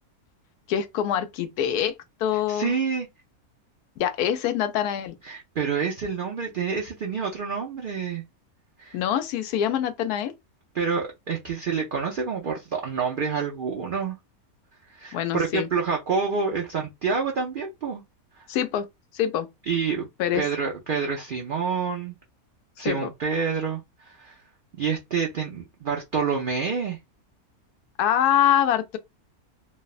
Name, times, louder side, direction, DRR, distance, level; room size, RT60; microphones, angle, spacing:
voice 1, 0.7-1.9 2.2-2.7 4.0-5.1 8.9-10.3 15.1-15.7 18.5-18.8 19.1-19.5 20.2-20.4 22.8-23.1 28.0-29.0, left 10 dB, 90° left, 1.1 m, -24 dB
voice 2, 2.5-3.1 5.2-8.2 8.8-9.0 10.7-14.2 14.9-18.0 18.4-18.5 19.7-20.1 20.3-22.2 22.8-24.4 24.8-27.0, right 5 dB, 75° right, 0.4 m, -28 dB
3.2 x 2.1 x 2.3 m
omnidirectional pair, 1.6 m